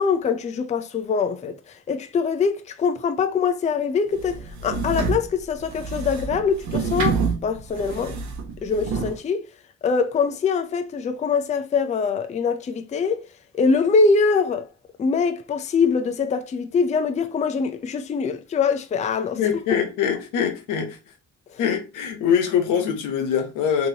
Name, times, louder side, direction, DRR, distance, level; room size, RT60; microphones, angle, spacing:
voice 1, 0.0-1.6 1.9-8.2 8.6-9.4 9.8-13.2 13.5-14.7 15.0-19.4 21.5-21.6, left 5 dB, 25° left, 0.4 m, -23 dB
sound 1, 4.1-9.2, right 4 dB, 65° right, 0.8 m, -28 dB
voice 2, 19.4-21.0 21.6-23.9, left 8 dB, 90° left, 0.8 m, -23 dB
3.0 x 2.7 x 2.7 m
cardioid pair, 90°, 30 cm